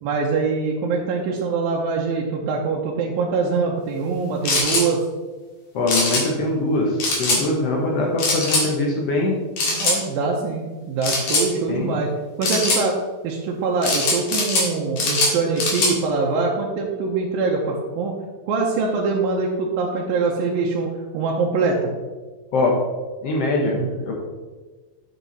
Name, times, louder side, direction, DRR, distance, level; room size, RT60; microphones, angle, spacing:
voice 1, 0.0-5.0 9.7-12.1 12.4-13.0 13.2-18.1 18.4-21.9 23.7-23.9, right 4 dB, 75° right, -2 dB, 2.5 m, -23 dB
sound 1, 4.5-4.9 5.9-6.2 7.0-7.4 8.2-8.7 9.6-10.0 11.0-11.5 12.4-12.8 13.8-14.7 15.0-15.9, left 2 dB, 50° left, 2.6 m, -21 dB
voice 2, 5.7-9.4 11.7-12.0 22.5-22.7 23.2-24.1, left 2 dB, 75° left, -1 dB, 1.4 m, -22 dB
7.5 x 7.0 x 4.0 m, 1.3 s
omnidirectional pair, 4.4 m